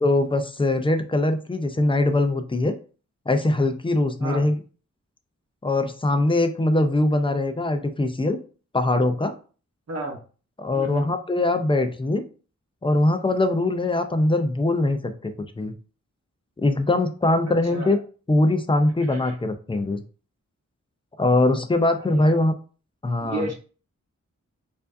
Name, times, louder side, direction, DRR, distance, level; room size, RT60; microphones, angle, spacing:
voice 1, 0.0-2.8 3.3-4.6 5.6-8.4 8.7-9.3 10.6-12.2 12.8-15.7 16.6-18.0 18.3-20.0 21.2-22.5 23.0-23.5, left 2 dB, 20° left, 8 dB, 0.4 m, -22 dB
voice 2, 4.2-4.5 9.9-10.2 10.7-11.1 17.7-18.0 19.0-19.3 22.0-22.4 23.2-23.5, right 2 dB, 60° right, 1 dB, 1.0 m, -33 dB
4.5 x 2.6 x 2.5 m, 0.38 s
wide cardioid pair, 120°, 29 cm